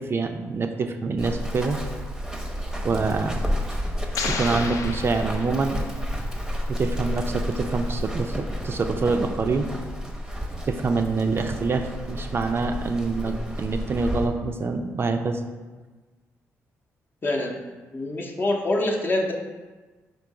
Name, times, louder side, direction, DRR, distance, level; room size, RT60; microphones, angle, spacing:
voice 1, 0.0-1.8 2.8-3.4 4.2-5.8 6.7-9.7 10.3-15.4, right 4 dB, 40° right, 6 dB, 0.4 m, -26 dB
Run, 1.2-14.3, equal, 10° right, 0.7 m, -31 dB
sound 1, 4.1-6.0, left 4 dB, 70° left, 0.4 m, -32 dB
voice 2, 17.2-17.6 17.9-19.3, left 1 dB, 35° left, 1 dB, 0.7 m, -25 dB
3.7 x 2.7 x 4.7 m, 1.3 s
supercardioid pair, 65°, 6 cm